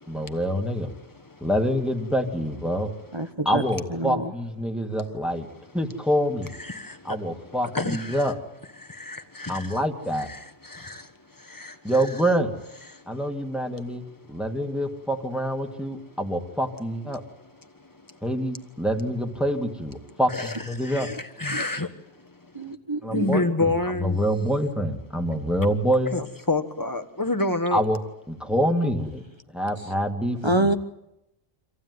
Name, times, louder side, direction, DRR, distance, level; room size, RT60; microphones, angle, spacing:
voice 1, 0.1-0.9 1.4-2.9 3.5-5.5 5.7-6.5 7.0-8.3 9.5-10.3 11.8-12.5 13.1-14.0 14.3-17.2 18.2-21.1 23.0-26.1 27.7-28.0 28.3-29.2 29.5-30.7, equal, ahead, 2.0 m, -26 dB
voice 2, 3.1-3.6 3.9-4.3 21.5-21.6 22.5-23.3 30.4-30.7, right 2 dB, 30° right, 1.0 m, -26 dB
voice 3, 6.6-7.2 7.7-8.2 8.8-9.8 10.3-11.1 11.4-11.8 12.9-13.0 18.1-18.2 20.3-21.9 23.1-24.2 26.1-27.8, left 2 dB, 20° left, 1.4 m, -29 dB
26.0 x 15.0 x 9.6 m
omnidirectional pair, 1.1 m